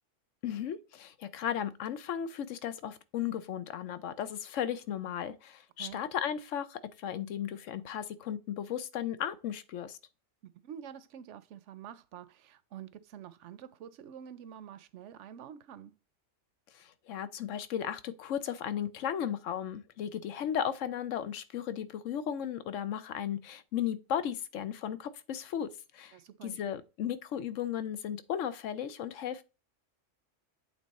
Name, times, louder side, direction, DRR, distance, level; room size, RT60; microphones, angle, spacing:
voice 1, 0.4-10.0 16.7-26.2 26.4-29.4, left 9 dB, 85° left, 1.0 m, -35 dB
voice 2, 10.4-15.9 26.1-26.6, right 9 dB, 75° right, 0.9 m, -47 dB
8.3 x 3.4 x 4.1 m
omnidirectional pair, 1.3 m